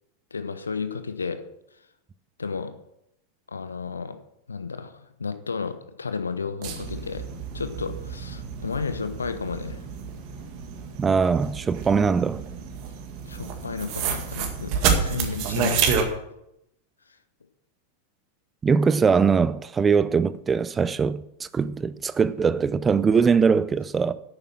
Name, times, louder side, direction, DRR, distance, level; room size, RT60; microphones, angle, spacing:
voice 1, 0.3-1.4 2.4-2.7 3.5-4.1 4.5-7.2 7.5-9.8 13.3-15.9, left 5 dB, 75° left, 1.1 m, -32 dB
sound 1, 6.6-16.0, right 6 dB, 45° right, 1.9 m, -29 dB
voice 2, 11.0-12.4 18.6-24.1, right 5 dB, 20° right, 0.5 m, -21 dB
10.5 x 8.9 x 6.1 m
figure-of-eight pair, 90°, 0 cm